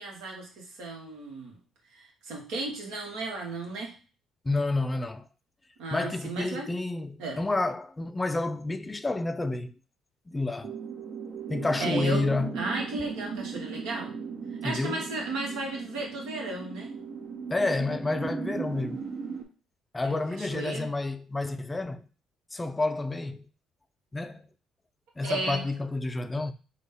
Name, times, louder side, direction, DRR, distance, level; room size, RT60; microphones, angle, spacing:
voice 1, 0.0-1.6 1.9-3.9 5.8-6.7 7.2-7.4 11.8-14.1 14.6-16.9 20.0-20.9 25.2-25.6, right 2 dB, 85° right, 1.1 m, -34 dB
voice 2, 4.4-5.3 5.9-9.7 10.3-10.7 11.5-12.6 14.6-15.1 17.5-19.1 19.9-22.1 22.5-23.5 24.1-24.5 25.2-26.5, left 2 dB, 20° left, 0.3 m, -29 dB
sound 1, 10.6-19.4, right 5 dB, 65° right, 0.9 m, -37 dB
3.9 x 2.3 x 3.5 m
supercardioid pair, 65°, 0 cm